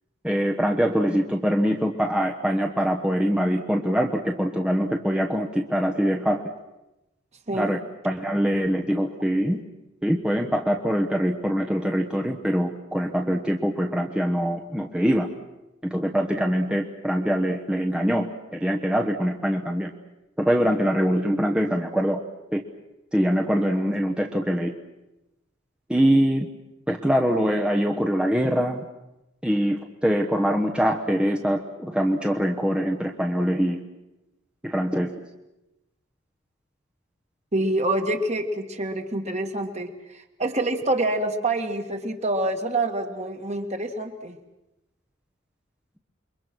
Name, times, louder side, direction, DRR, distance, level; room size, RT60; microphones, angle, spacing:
voice 1, 0.2-6.4 7.5-7.8 8.0-9.6 10.0-15.3 15.8-18.3 18.5-19.9 20.4-22.2 22.5-22.6 23.1-24.7 25.9-26.5 26.9-28.8 29.4-33.8 34.6-35.1, equal, 5° right, 1 dB, 1.1 m, -23 dB
voice 2, 37.5-44.4, right 2 dB, 35° right, 5 dB, 2.0 m, -26 dB
28.5 x 23.0 x 6.2 m, 0.96 s
head